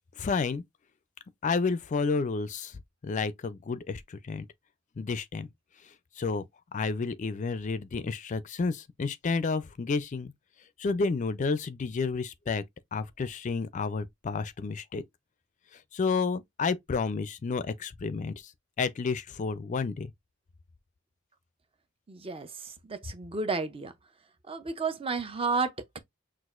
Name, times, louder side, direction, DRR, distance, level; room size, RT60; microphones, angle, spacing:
voice 1, 0.2-0.6 1.4-4.5 5.0-5.5 5.8-6.4 6.7-10.3 10.8-12.6 12.9-15.0 15.7-18.5 18.8-20.1, left 4 dB, 40° left, 0.4 m, -31 dB
voice 2, 22.1-23.9 24.5-26.0, right 4 dB, 30° right, 0.5 m, -32 dB
6.0 x 2.4 x 2.4 m
head